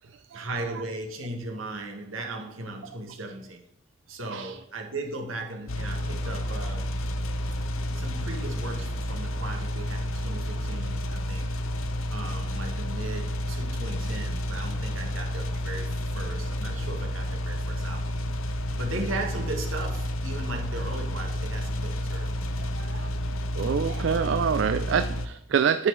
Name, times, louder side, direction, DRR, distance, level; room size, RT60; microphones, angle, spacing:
voice 1, 0.3-3.7 4.1-6.9 7.9-11.5 12.1-18.2 18.7-22.3 22.9-23.0, right 2 dB, 80° right, 1.4 m, -37 dB
sound 1, 5.7-25.3, left 1 dB, 80° left, 0.7 m, -30 dB
voice 2, 22.8-23.1 23.6-25.9, right 7 dB, 65° right, 0.3 m, -26 dB
9.8 x 4.4 x 4.6 m
head